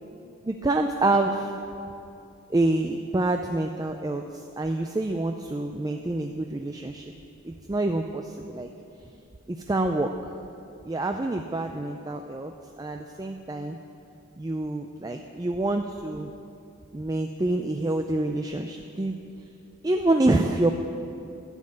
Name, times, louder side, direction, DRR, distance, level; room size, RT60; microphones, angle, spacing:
voice 1, 0.5-1.6 2.5-7.1 7.4-8.7 9.5-10.1 10.8-13.8 14.4-16.3 16.9-19.2 19.8-20.7, right 2 dB, 15° right, 5 dB, 0.3 m, -27 dB
11.5 x 7.5 x 8.5 m, 2.6 s
head